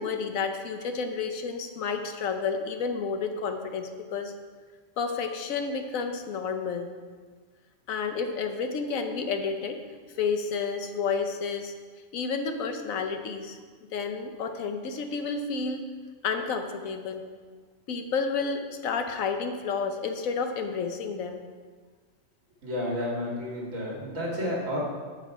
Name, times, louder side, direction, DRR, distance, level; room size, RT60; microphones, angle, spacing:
voice 1, 0.0-4.3 5.0-6.9 7.9-9.8 10.2-11.7 12.1-13.6 13.9-15.8 16.2-17.2 17.9-21.4, left 5 dB, 85° left, 6 dB, 1.3 m, -30 dB
voice 2, 22.6-24.8, left 1 dB, 75° right, -3 dB, 2.5 m, -31 dB
13.5 x 4.8 x 4.7 m, 1.5 s
omnidirectional pair, 1.4 m